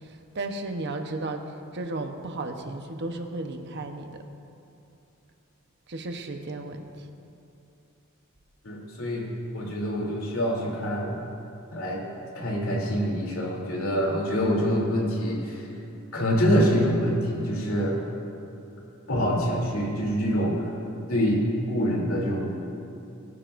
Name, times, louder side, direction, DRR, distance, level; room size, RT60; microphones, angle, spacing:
voice 1, 0.0-1.4 1.7-4.2 5.9-7.1, right 2 dB, 55° right, 5 dB, 1.0 m, -34 dB
voice 2, 8.6-9.3 9.5-11.2 11.7-12.0 12.3-15.7 16.1-18.0 19.1-20.7 21.1-22.7, equal, 75° left, -3 dB, 3.0 m, -25 dB
21.5 x 12.0 x 2.6 m, 2.8 s
head